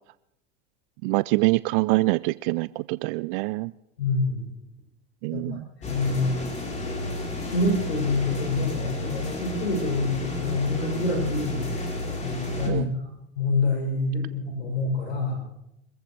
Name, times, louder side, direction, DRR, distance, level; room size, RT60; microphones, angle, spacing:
voice 1, 1.0-3.7 5.2-5.7 12.7-12.9, right 23 dB, 60° right, 18 dB, 0.4 m, -25 dB
voice 2, 4.0-4.5 5.3-6.4 7.4-11.7 12.2-13.1 13.4-15.4, left 3 dB, 85° left, 0 dB, 6.9 m, -27 dB
sound 1, 5.8-12.7, left 2 dB, 20° left, 3.9 m, -32 dB
26.0 x 14.5 x 3.3 m, 0.83 s
hypercardioid pair, 90°, 31 cm